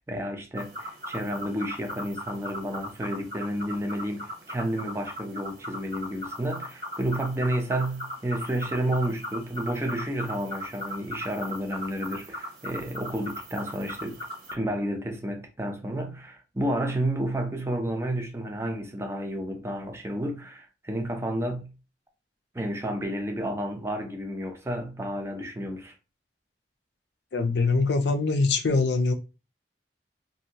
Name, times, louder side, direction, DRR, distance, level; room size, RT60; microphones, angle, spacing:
voice 1, 0.0-14.1 14.5-21.7 22.5-25.9, right 1 dB, 15° right, 0.6 m, -31 dB
sound 1, 0.6-14.5, equal, 50° right, 1.0 m, -38 dB
voice 2, 27.3-29.1, left 3 dB, 75° left, 0.5 m, -23 dB
2.7 x 2.6 x 2.8 m
head